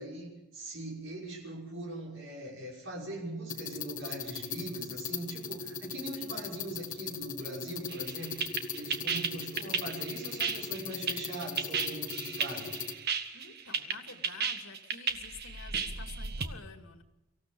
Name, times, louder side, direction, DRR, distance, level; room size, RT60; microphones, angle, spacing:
voice 1, 0.0-12.7, right 1 dB, 70° right, -3 dB, 6.1 m, -41 dB
sound 1, 3.5-12.9, left 6 dB, 40° left, 1.5 m, -39 dB
sound 2, 7.9-16.5, right 6 dB, 50° right, 1.5 m, -34 dB
voice 2, 9.2-9.5 12.3-12.4 13.3-17.0, left 5 dB, 80° left, 5 dB, 2.4 m, -50 dB
25.0 x 16.0 x 7.0 m, 0.94 s
head